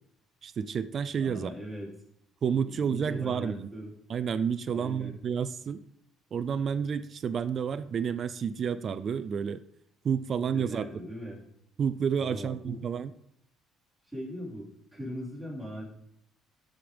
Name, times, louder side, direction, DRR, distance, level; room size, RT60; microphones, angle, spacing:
voice 1, 0.4-1.5 2.4-3.7 4.1-5.8 6.3-9.6 10.0-10.8 11.8-13.1, right 7 dB, 35° right, 14 dB, 0.4 m, -30 dB
voice 2, 1.2-1.9 2.6-3.9 4.7-5.2 10.5-11.4 12.2-12.8 14.0-15.8, equal, ahead, -7 dB, 4.1 m, -40 dB
13.0 x 5.2 x 5.1 m, 0.73 s
cardioid pair, 145°, 0 cm